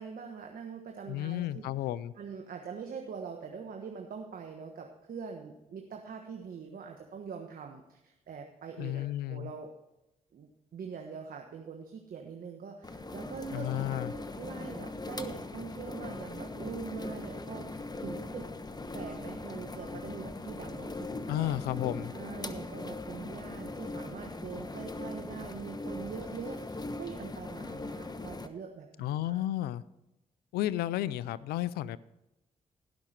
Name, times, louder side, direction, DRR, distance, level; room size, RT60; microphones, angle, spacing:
voice 1, 0.0-1.6 2.2-9.7 10.3-18.5 18.9-21.6 22.1-29.4, right 6 dB, 65° right, 3 dB, 1.3 m, -43 dB
voice 2, 1.1-2.1 8.8-9.5 13.5-14.1 21.3-22.1 29.0-29.8 30.5-32.0, left 14 dB, 90° left, 19 dB, 0.4 m, -32 dB
sound 1, 12.8-28.5, left 2 dB, 25° left, 1.1 m, -40 dB
18.0 x 6.0 x 4.4 m, 0.93 s
supercardioid pair, 45°, 16 cm